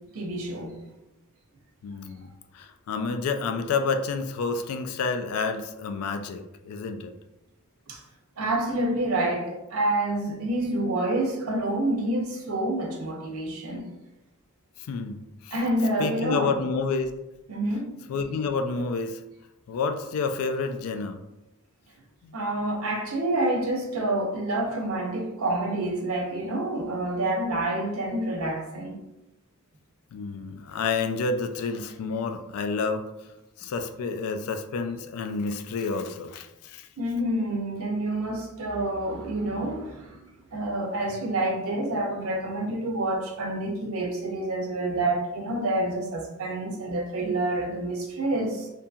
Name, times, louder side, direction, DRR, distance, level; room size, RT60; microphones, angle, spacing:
voice 1, 0.1-0.8 7.9-8.0 8.4-13.9 15.5-16.6 17.5-17.9 22.3-29.0 37.0-40.3 40.5-48.7, right 1 dB, 65° right, 0.6 m, -28 dB
voice 2, 1.8-2.3 2.5-7.1 14.8-15.5 16.0-17.1 18.1-19.2 19.7-21.2 22.2-22.4 30.1-33.0 33.6-36.9, left 4 dB, 70° left, 0.3 m, -29 dB
2.7 x 2.6 x 2.3 m
head